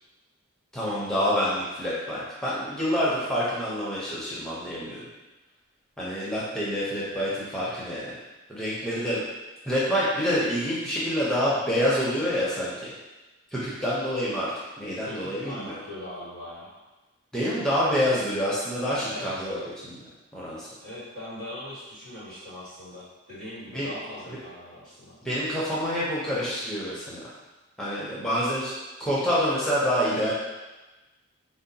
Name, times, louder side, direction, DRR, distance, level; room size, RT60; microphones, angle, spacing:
voice 1, 0.7-5.0 6.0-8.2 8.5-9.2 9.7-12.9 13.5-14.5 14.8-15.8 17.3-20.0 20.3-20.7 23.7-23.9 25.2-27.2 27.8-28.7 29.0-30.3, equal, 5° left, -8 dB, 0.5 m, -27 dB
voice 2, 15.0-16.7 19.1-19.5 20.8-25.1, left 1 dB, 80° right, -10 dB, 1.4 m, -40 dB
3.7 x 2.1 x 2.6 m, 1.1 s
head